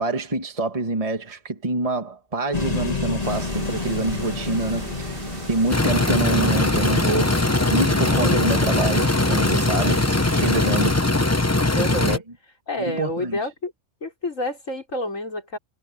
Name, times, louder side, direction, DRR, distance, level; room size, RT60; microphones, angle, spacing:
voice 1, 0.0-7.4 7.7-10.1 10.4-11.1 12.1-12.2 12.8-13.4, right 2 dB, 25° right, 1.8 m, -26 dB
sound 1, 2.5-10.6, left 3 dB, 30° left, 2.1 m, -32 dB
sound 2, 3.2-11.0, right 3 dB, 45° right, 2.0 m, -37 dB
sound 3, 5.7-12.2, left 2 dB, 15° left, 0.9 m, -20 dB
voice 2, 8.2-8.6 11.7-12.2 12.7-13.7 14.0-15.6, left 1 dB, 75° left, 6.4 m, -29 dB
omnidirectional pair, 1.3 m